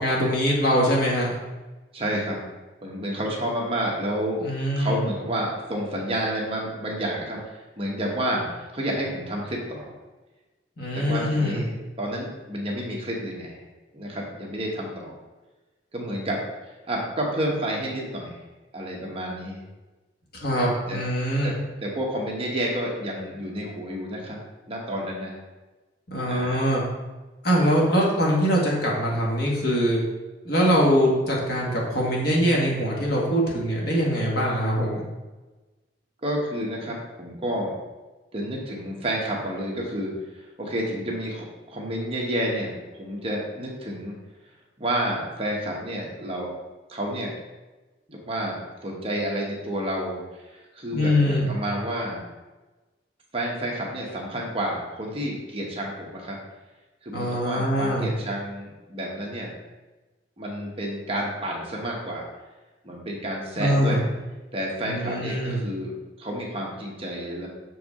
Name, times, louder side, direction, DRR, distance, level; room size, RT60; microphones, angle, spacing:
voice 1, 0.0-1.4 4.4-5.0 10.8-11.6 20.4-21.5 26.1-26.8 27.4-30.0 30.4-35.0 50.9-51.5 57.1-58.1 63.6-64.0 64.8-65.6, equal, 60° left, -3 dB, 1.6 m, -23 dB
voice 2, 1.9-2.4 2.8-4.4 4.8-10.0 10.9-13.6 13.9-15.1 15.9-16.4 16.9-18.3 18.7-19.6 20.9-21.0 21.4-24.4 24.7-25.4 26.3-26.7 36.2-37.7 38.3-44.1 44.8-46.5 46.9-47.3 48.1-52.2 53.3-56.4 57.0-59.5 60.4-62.3 62.8-64.0 64.5-65.9 66.2-67.5, right 1 dB, 35° right, -2 dB, 1.2 m, -30 dB
6.3 x 4.7 x 3.6 m, 1.2 s
head